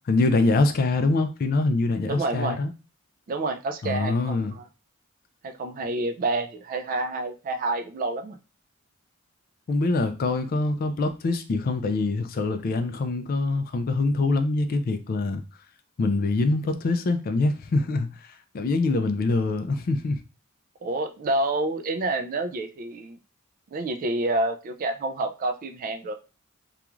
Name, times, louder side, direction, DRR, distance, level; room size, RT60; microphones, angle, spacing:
voice 1, 0.1-2.7 3.8-4.5 9.7-15.4 16.0-20.2, left 3 dB, 45° left, 0.3 m, -24 dB
voice 2, 2.1-2.6 3.3-4.6 5.4-8.4 20.8-23.2 23.7-26.1, right 2 dB, 40° right, 0.3 m, -28 dB
2.3 x 2.3 x 3.0 m
head